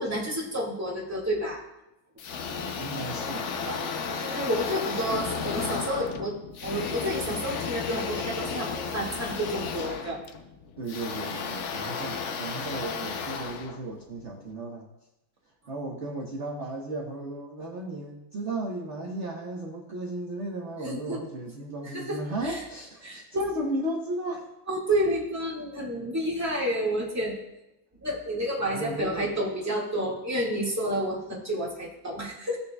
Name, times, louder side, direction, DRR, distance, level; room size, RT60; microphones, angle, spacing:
voice 1, 0.0-1.6 3.6-6.4 6.6-10.2 20.8-21.2 21.8-22.6 23.0-23.4 24.7-27.3 28.0-32.6, equal, 10° right, -4 dB, 1.7 m, -30 dB
sound 1, 2.2-14.4, left 5 dB, 80° left, 0.6 m, -34 dB
voice 2, 2.8-3.6 10.8-14.9 15.7-24.5 28.7-29.3, right 1 dB, 45° right, -1 dB, 1.1 m, -35 dB
16.0 x 6.6 x 2.3 m, 0.91 s
omnidirectional pair, 2.2 m